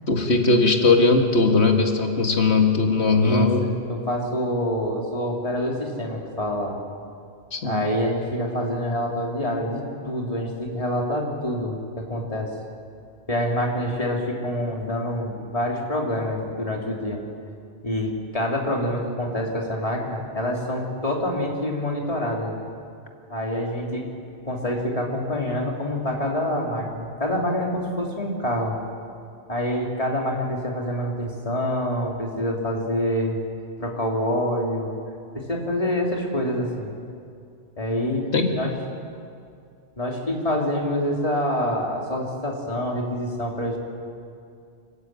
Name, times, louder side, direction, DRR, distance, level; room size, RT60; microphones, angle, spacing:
voice 1, 0.1-3.7 7.5-7.9 38.3-38.6, left 3 dB, 90° left, 3 dB, 2.2 m, -19 dB
voice 2, 3.2-6.8 7.6-12.5 13.3-17.2 17.8-22.5 23.3-24.1 24.4-28.8 29.5-33.4 33.8-34.9 35.3-36.9 37.8-38.7 40.0-43.8, equal, 35° left, -1 dB, 3.1 m, -26 dB
25.0 x 14.5 x 9.0 m, 2.4 s
omnidirectional pair, 1.1 m